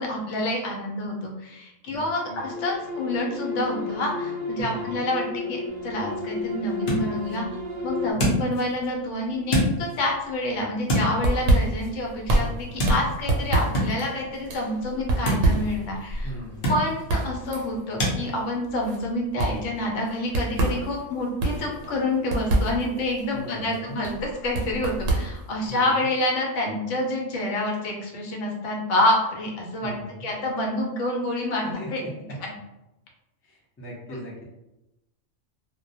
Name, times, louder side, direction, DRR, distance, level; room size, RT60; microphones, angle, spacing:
voice 1, 0.0-7.5 7.8-16.3 16.7-29.9 30.2-32.0 32.4-32.5, left 1 dB, 80° left, -1 dB, 0.9 m, -28 dB
voice 2, 1.9-2.4 4.6-5.0 16.2-16.7 23.3-24.0 25.6-25.9 29.8-30.3 31.7-32.4 33.4-34.4, right 1 dB, 20° left, -4 dB, 0.3 m, -39 dB
sound 1, 2.4-8.1, left 3 dB, 55° right, 0.6 m, -32 dB
sound 2, 5.7-18.2, equal, 55° left, 0.7 m, -31 dB
sound 3, 10.9-25.8, right 2 dB, 85° right, 0.9 m, -27 dB
2.2 x 2.1 x 2.6 m, 0.93 s
omnidirectional pair, 1.3 m